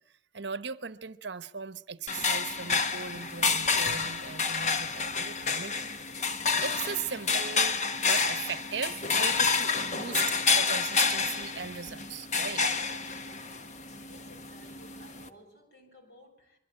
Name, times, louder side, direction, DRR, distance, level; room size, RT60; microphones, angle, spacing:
voice 1, 0.1-6.0 6.6-12.6, right 6 dB, 70° right, 1.0 m, -38 dB
sound 1, 2.1-15.3, left 5 dB, 40° left, 1.3 m, -29 dB
voice 2, 14.0-16.6, equal, 55° left, 6.3 m, -56 dB
24.0 x 23.5 x 8.9 m
head